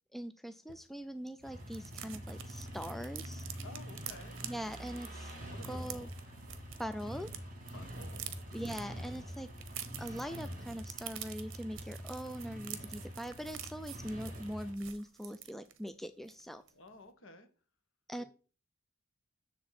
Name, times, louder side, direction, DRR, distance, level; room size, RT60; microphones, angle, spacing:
voice 1, 0.1-3.4 4.4-5.3 5.7-6.1 6.8-7.3 8.5-9.5 10.0-16.6 18.1-18.2, equal, ahead, 0.4 m, -42 dB
sound 1, 0.7-0.8 1.1-1.2 1.4-7.4 7.7-15.9 16.3-16.4 16.7-16.9, right 11 dB, 60° right, 1.1 m, -48 dB
sound 2, 1.4-14.7, equal, 40° right, 3.9 m, -46 dB
voice 2, 3.6-4.4 5.5-6.1 7.7-8.8 16.7-17.5 18.2-18.3, left 2 dB, 60° left, 1.7 m, -53 dB
7.5 x 7.0 x 4.2 m
head